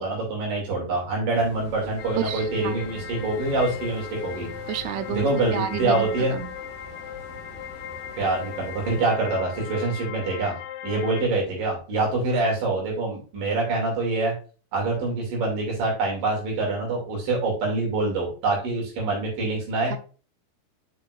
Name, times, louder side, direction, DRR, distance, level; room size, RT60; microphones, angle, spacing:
voice 1, 0.0-4.5 5.1-6.4 8.2-10.6 10.8-14.3 14.7-20.0, right 2 dB, 70° right, -1 dB, 4.1 m, -25 dB
sound 1, 1.3-9.1, right 1 dB, 25° left, 0.6 m, -44 dB
sound 2, 2.0-11.2, left 11 dB, 75° left, 1.7 m, -38 dB
voice 2, 2.2-2.7 4.7-6.1 6.3-6.5, right 9 dB, 90° right, 10 dB, 1.7 m, -31 dB
6.4 x 6.1 x 2.4 m, 0.37 s
omnidirectional pair, 4.1 m